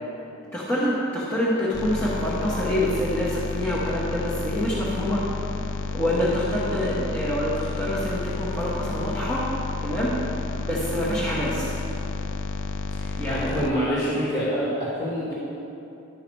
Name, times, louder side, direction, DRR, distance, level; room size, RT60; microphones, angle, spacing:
voice 1, 0.5-5.2 5.9-9.5 9.8-10.1 10.6-11.7 13.2-13.6, equal, 10° left, -10 dB, 1.1 m, -26 dB
sound 1, 1.7-13.7, left 3 dB, 55° left, 0.4 m, -31 dB
voice 2, 12.9-15.3, equal, 30° left, -9 dB, 1.7 m, -27 dB
11.5 x 5.7 x 4.6 m, 2.9 s
head